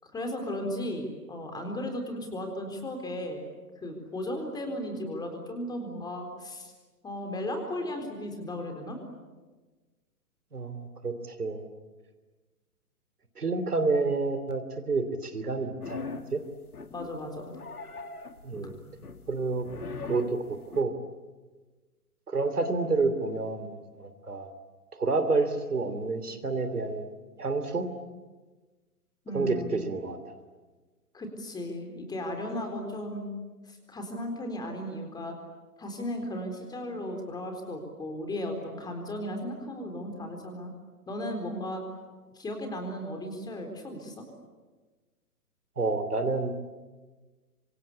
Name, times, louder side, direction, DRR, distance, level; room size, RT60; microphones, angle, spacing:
voice 1, 0.0-3.4 3.8-6.7 7.0-9.0 16.9-17.5 29.2-29.8 31.1-33.3 33.7-35.3 35.8-40.7 41.1-41.8 42.3-44.2, left 1 dB, 10° left, 4 dB, 4.1 m, -35 dB
voice 2, 10.5-11.7 13.4-16.4 18.4-18.7 19.3-19.7 20.0-20.9 22.3-24.5 25.0-27.1 27.4-27.9 29.3-30.4 45.8-46.7, right 3 dB, 75° right, 9 dB, 3.1 m, -29 dB
sound 1, 15.8-16.4 16.7-17.2 17.5-20.8, left 4 dB, 70° left, 2.1 m, -40 dB
27.0 x 25.5 x 8.5 m, 1.3 s
figure-of-eight pair, 125°, 46 cm